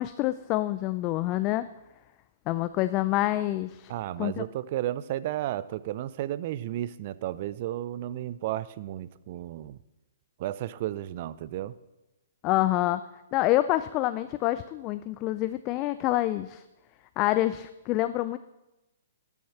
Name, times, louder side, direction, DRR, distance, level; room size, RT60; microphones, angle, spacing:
voice 1, 0.0-1.7 2.5-3.9 4.2-4.4 12.4-13.0 13.3-16.6 17.2-18.4, left 15 dB, 30° left, 13 dB, 0.3 m, -27 dB
voice 2, 3.9-9.8 10.4-11.7, right 13 dB, 45° right, 18 dB, 0.5 m, -33 dB
12.5 x 7.2 x 5.8 m, 0.99 s
figure-of-eight pair, 120°, 0 cm